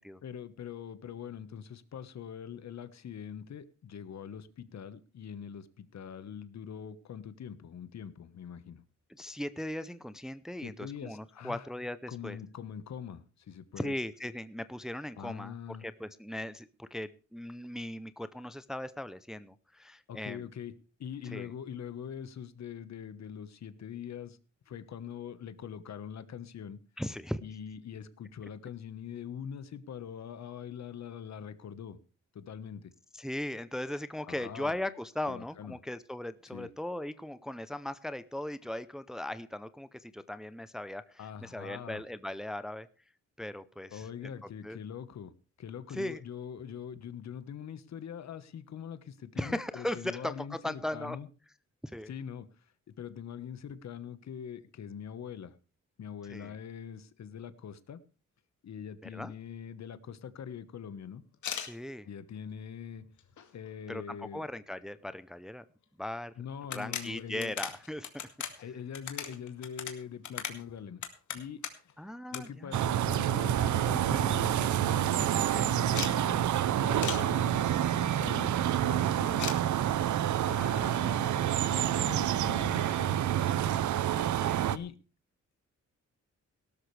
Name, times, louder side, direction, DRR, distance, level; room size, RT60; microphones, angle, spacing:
voice 1, 0.2-8.8 10.6-11.7 12.1-13.9 15.2-15.8 20.1-20.7 21.0-24.4 24.7-26.8 27.4-32.0 32.3-32.9 34.3-34.8 35.3-35.8 36.5-36.7 41.2-42.0 43.9-45.3 45.6-51.3 52.1-52.5 53.0-55.6 56.0-58.0 58.6-61.2 62.0-63.0 63.5-64.5 66.4-67.6 68.6-71.0 71.3-71.6 72.3-79.6 80.2-83.6 84.7-85.0, left 8 dB, 65° left, 13 dB, 1.3 m, -43 dB
voice 2, 9.2-12.4 13.8-20.5 21.3-21.5 27.0-27.4 33.1-42.9 43.4-44.3 44.6-44.8 45.9-46.2 49.4-51.2 51.8-52.1 56.3-56.5 59.0-59.3 61.6-62.1 63.9-65.6 66.0-66.3 66.7-68.2 68.5-68.6 72.0-72.8 75.5-75.7 79.4-79.6 80.5-80.9 84.4-84.7, left 1 dB, ahead, 13 dB, 0.6 m, -38 dB
sound 1, 61.3-61.7 62.4-62.5 63.0-63.7 64.0-64.1 64.4-64.5 65.8-65.9 66.2-66.3 66.6-71.9 72.3-72.4 72.7-73.5 73.8-73.9 74.2-74.3 74.5-74.9 75.9-76.2 77.0-77.3 79.4-79.6, left 8 dB, 85° left, 2.4 m, -39 dB
sound 2, 72.7-84.8, right 11 dB, 85° right, 0.8 m, -28 dB
18.0 x 12.5 x 3.3 m, 0.36 s
wide cardioid pair, 140°, 29 cm